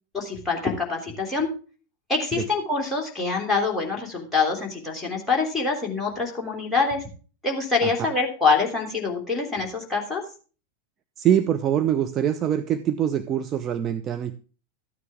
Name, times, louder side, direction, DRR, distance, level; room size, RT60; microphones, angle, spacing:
voice 1, 0.1-1.5 2.1-7.1 7.4-10.2, left 4 dB, 5° left, -2 dB, 3.1 m, -25 dB
voice 2, 11.2-14.3, right 10 dB, 30° right, 8 dB, 0.6 m, -24 dB
13.5 x 9.3 x 3.6 m, 0.36 s
figure-of-eight pair, 90°, 0 cm